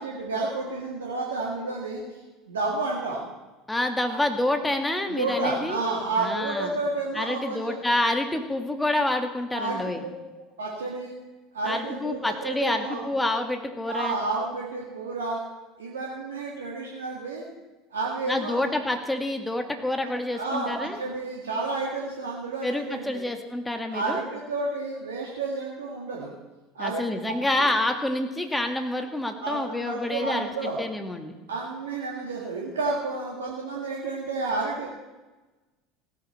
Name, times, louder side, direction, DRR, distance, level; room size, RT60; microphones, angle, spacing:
voice 1, 0.0-2.2 2.5-3.2 4.1-4.2 5.1-7.8 9.5-10.1 10.6-11.1 11.5-13.0 13.9-15.4 15.8-17.5 17.9-18.7 20.3-23.2 23.9-26.3 26.8-27.1 27.6-27.7 29.4-30.8 31.5-34.9, right 3 dB, 80° right, -3 dB, 1.8 m, -30 dB
voice 2, 3.7-5.8 6.2-6.8 7.1-10.0 11.7-14.2 18.3-21.0 22.6-24.3 26.8-30.5 30.8-31.4, left 1 dB, 10° left, 5 dB, 1.9 m, -28 dB
17.0 x 9.3 x 4.3 m, 1.2 s
figure-of-eight pair, 70°, 0 cm